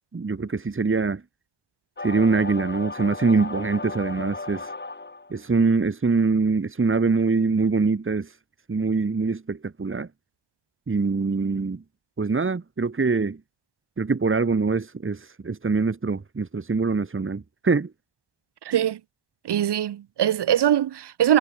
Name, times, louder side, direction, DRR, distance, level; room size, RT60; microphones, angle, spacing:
voice 1, 0.1-1.2 2.0-4.7 5.3-8.3 8.7-10.1 10.9-11.8 12.2-13.4 14.0-17.9, right 4 dB, 30° right, 2.9 m, -23 dB
sound 1, 2.0-5.4, left 3 dB, 25° left, 6.7 m, -35 dB
voice 2, 18.6-19.0 19.4-21.4, right 11 dB, 75° right, 4.7 m, -22 dB
supercardioid pair, 55°, 40 cm